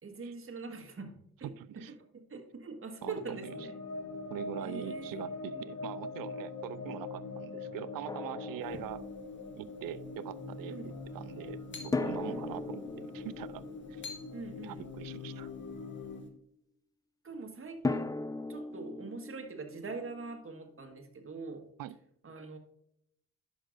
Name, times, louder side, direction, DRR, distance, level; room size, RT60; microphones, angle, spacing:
voice 1, 0.0-1.5 2.3-3.7 4.6-5.2 5.5-5.7 10.7-10.9 12.3-12.6 14.3-14.8 17.2-18.1 18.5-21.6 22.2-22.6, right 4 dB, 40° right, 4 dB, 1.7 m, -43 dB
voice 2, 1.6-1.9 3.0-3.5 4.3-9.1 9.6-13.6 13.9-14.0 14.6-15.5 21.8-22.0, right 12 dB, 75° right, 18 dB, 0.5 m, -43 dB
sound 1, 3.0-16.2, left 3 dB, 65° left, 1.7 m, -43 dB
Drum, 8.1-9.4 11.9-14.9 17.8-20.7, left 3 dB, 10° left, 0.4 m, -38 dB
sound 2, 8.6-16.3, left 3 dB, 35° left, 1.6 m, -54 dB
11.0 x 6.4 x 2.6 m, 0.74 s
supercardioid pair, 65°, 35 cm